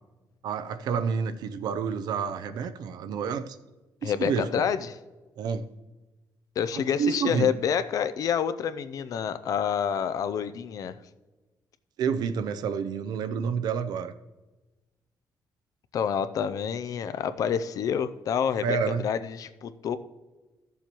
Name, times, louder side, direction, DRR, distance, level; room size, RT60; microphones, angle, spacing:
voice 1, 0.4-3.6 4.0-4.7 5.4-5.6 6.7-7.5 12.0-14.1 18.6-19.0, right 6 dB, 75° right, 11 dB, 0.5 m, -29 dB
voice 2, 4.0-5.0 6.6-11.0 15.9-18.8 19.0-20.0, left 8 dB, 60° left, 12 dB, 0.5 m, -28 dB
15.0 x 7.0 x 3.0 m, 1.2 s
cardioid pair, 155°, 7 cm